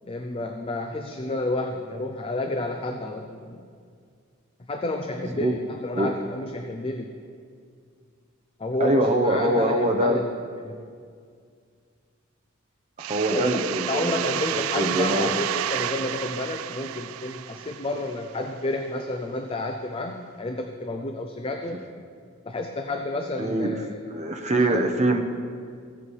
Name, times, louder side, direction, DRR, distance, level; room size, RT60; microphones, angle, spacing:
voice 1, 0.0-3.6 4.7-7.1 8.6-10.3 10.6-10.8 13.3-21.8 22.5-24.0 24.5-24.9, left 2 dB, 25° left, 4 dB, 0.5 m, -31 dB
voice 2, 5.2-5.5 5.9-6.1 8.8-10.2 13.0-15.4 23.4-23.7 24.1-25.2, right 1 dB, 35° right, 3 dB, 0.8 m, -24 dB
sound 1, 13.0-18.5, right 12 dB, 80° right, 0.3 m, -31 dB
16.5 x 8.0 x 3.2 m, 2.2 s
head